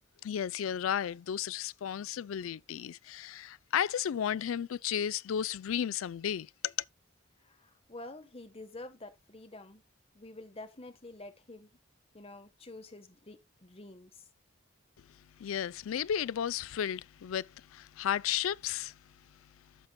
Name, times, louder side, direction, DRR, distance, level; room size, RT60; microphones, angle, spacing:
voice 1, 0.2-6.7 15.4-19.0, left 9 dB, 90° left, 0.4 m, -33 dB
voice 2, 7.4-9.8 10.1-11.7 12.1-14.2, left 2 dB, 30° left, 1.1 m, -48 dB
13.5 x 5.9 x 2.2 m
head